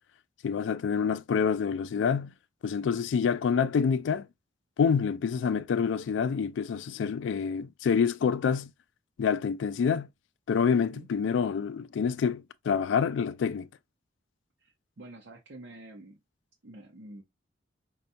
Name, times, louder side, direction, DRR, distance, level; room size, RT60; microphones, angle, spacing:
voice 1, 0.4-2.3 2.6-4.3 4.8-8.7 9.2-10.1 10.5-13.7, left 6 dB, 70° left, 0.3 m, -27 dB
voice 2, 10.7-11.1 14.6-16.2 16.6-17.2, right 1 dB, 65° right, 0.7 m, -48 dB
5.3 x 2.3 x 2.6 m
head